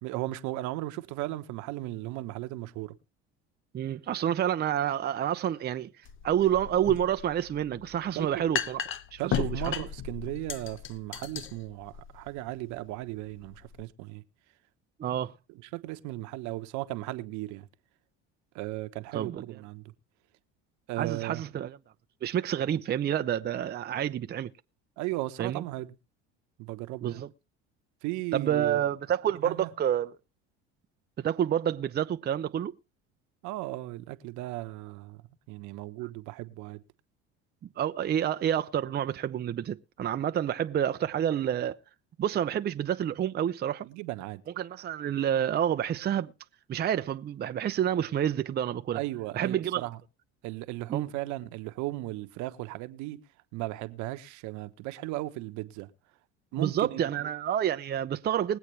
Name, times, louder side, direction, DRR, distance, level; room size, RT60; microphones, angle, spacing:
voice 1, 0.0-2.9 8.1-8.5 9.2-14.2 15.5-17.7 18.5-19.8 20.9-21.4 25.0-25.9 26.6-27.2 28.0-28.8 29.4-29.7 33.4-35.2 35.5-36.8 43.8-44.4 48.9-50.0 50.4-53.2 53.5-55.9 56.5-57.3, right 17 dB, 70° right, 1.1 m, -36 dB
voice 2, 3.7-5.9 6.2-8.8 9.1-9.7 15.0-15.3 19.1-19.4 21.0-21.8 22.2-24.5 25.4-25.6 27.0-27.3 28.3-30.1 31.2-32.7 37.8-41.8 42.2-43.9 44.6-46.3 46.7-49.0 49.4-49.9 50.9-51.1 56.6-58.6, right 10 dB, 35° right, 0.6 m, -28 dB
sound 1, 6.0-13.8, left 8 dB, 40° left, 0.9 m, -36 dB
21.0 x 8.2 x 3.2 m
supercardioid pair, 90°, 30 cm